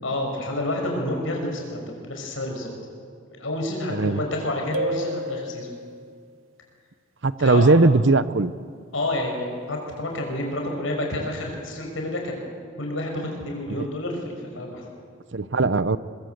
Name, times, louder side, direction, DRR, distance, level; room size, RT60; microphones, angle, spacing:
voice 1, 0.0-1.8 2.1-2.7 3.3-5.7 7.4-7.7 8.9-12.4 12.8-14.9, left 1 dB, 80° left, 1 dB, 5.9 m, -29 dB
voice 2, 3.9-4.2 7.2-8.5 13.7-13.9 15.3-16.0, right 3 dB, 65° right, 15 dB, 0.8 m, -19 dB
sound 1, 4.7-6.2, right 1 dB, 90° right, 1.0 m, -31 dB
23.0 x 22.0 x 8.0 m, 2.1 s
head